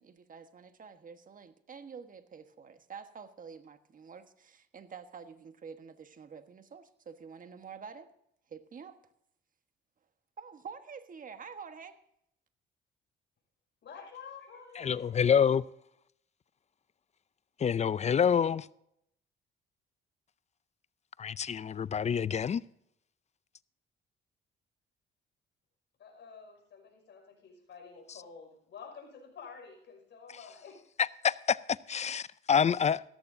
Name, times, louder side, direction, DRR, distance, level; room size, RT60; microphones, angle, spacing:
voice 1, 0.0-8.1 8.5-9.0 10.4-12.0, right 6 dB, 45° right, 1.3 m, -48 dB
voice 2, 13.8-15.1 26.0-30.8, left 5 dB, 65° left, 5.7 m, -50 dB
voice 3, 14.8-15.6 17.6-18.7 21.2-22.6 31.0-33.0, left 7 dB, 35° left, 0.4 m, -27 dB
16.0 x 14.0 x 2.7 m
cardioid pair, 90°, 20 cm